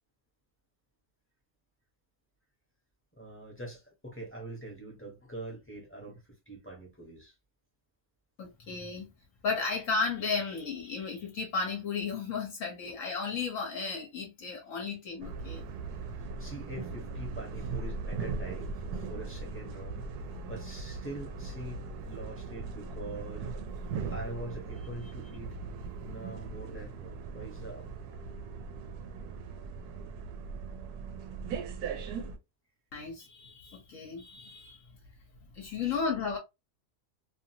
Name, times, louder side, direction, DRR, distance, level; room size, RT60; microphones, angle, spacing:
voice 1, 3.1-7.3 12.8-12.9 16.1-20.1 20.5-23.5 24.1-25.6 26.1-28.1 35.8-36.0, right 1 dB, 10° left, 0.8 m, -44 dB
voice 2, 8.4-9.1 9.4-15.7 32.9-35.0 35.5-36.4, left 5 dB, 60° left, 1.2 m, -34 dB
sound 1, 15.2-32.4, right 4 dB, 85° right, 1.1 m, -39 dB
2.9 x 2.5 x 2.7 m
omnidirectional pair, 1.6 m